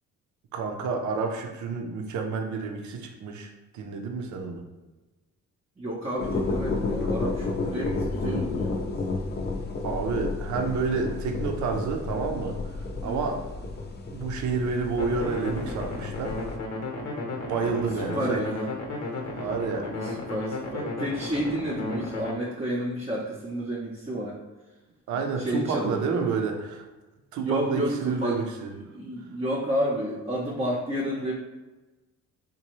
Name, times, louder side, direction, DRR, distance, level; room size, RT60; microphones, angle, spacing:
voice 1, 0.5-4.6 9.8-12.6 13.0-13.4 14.1-16.4 17.2-18.4 19.4-19.9 25.1-26.8 27.3-28.7, right 4 dB, 75° right, 4 dB, 0.6 m, -29 dB
voice 2, 5.8-8.9 13.0-13.3 17.6-18.7 19.4-19.5 19.7-24.4 25.1-26.1 27.4-28.4 28.7-31.3, right 1 dB, 20° right, -4 dB, 0.6 m, -31 dB
sound 1, 6.2-16.6, left 3 dB, 35° left, 0.5 m, -31 dB
sound 2, 15.0-22.3, left 2 dB, 85° left, 0.9 m, -34 dB
4.0 x 2.2 x 3.0 m, 1.1 s
cardioid pair, 90°, 30 cm